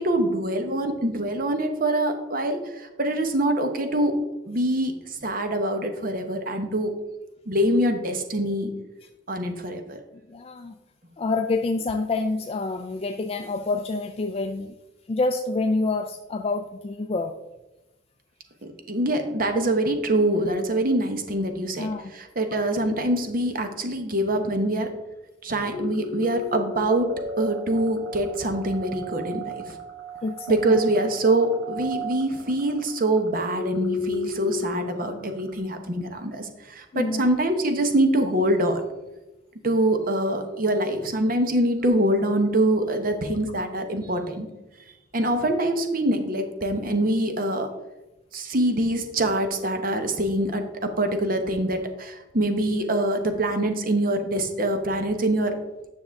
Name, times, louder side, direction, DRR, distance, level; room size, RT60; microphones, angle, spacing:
voice 1, 0.0-4.2 4.5-6.9 7.5-8.7 9.3-10.0 18.6-24.9 25.4-29.8 30.5-38.8 39.6-44.5 45.1-47.7 48.3-55.6, right 1 dB, 45° right, 6 dB, 1.0 m, -24 dB
voice 2, 10.3-10.7 11.2-14.7 15.1-17.3 21.8-22.1 30.2-30.6 36.9-37.2, left 3 dB, 30° left, 6 dB, 0.3 m, -27 dB
sound 1, 25.7-35.6, left 1 dB, 65° right, 1.8 m, -35 dB
9.6 x 6.2 x 3.5 m, 1.0 s
head